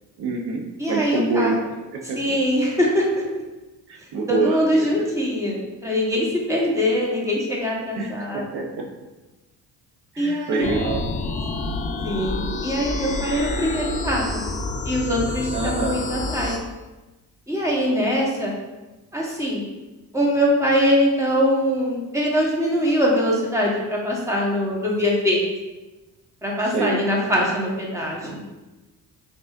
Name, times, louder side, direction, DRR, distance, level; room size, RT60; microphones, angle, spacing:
voice 1, 0.2-2.2 3.9-4.6 5.0-5.1 8.0-8.8 10.1-11.0 15.5-16.0 26.7-27.0, right 3 dB, 70° right, 1 dB, 0.8 m, -26 dB
voice 2, 0.8-1.6 2.1-3.2 4.3-8.6 10.2-10.8 12.0-14.5 14.8-16.6 17.5-18.5 19.1-19.7 20.1-25.5 26.4-28.4, equal, 10° right, -3 dB, 1.3 m, -22 dB
sound 1, 10.6-16.6, left 2 dB, 20° left, 0.5 m, -28 dB
4.7 x 4.0 x 2.5 m, 1.1 s
cardioid pair, 80°, 40 cm